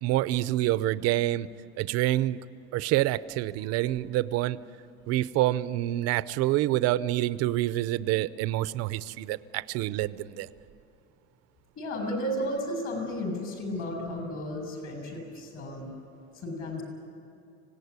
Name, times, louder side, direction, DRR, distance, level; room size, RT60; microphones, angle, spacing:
voice 1, 0.0-1.5 1.8-2.4 2.7-4.6 5.1-10.5, right 15 dB, 50° right, 15 dB, 0.7 m, -27 dB
voice 2, 11.8-15.9 16.3-16.8, equal, 45° left, 4 dB, 7.4 m, -33 dB
25.0 x 18.0 x 9.6 m, 2.6 s
cardioid pair, 155°, 31 cm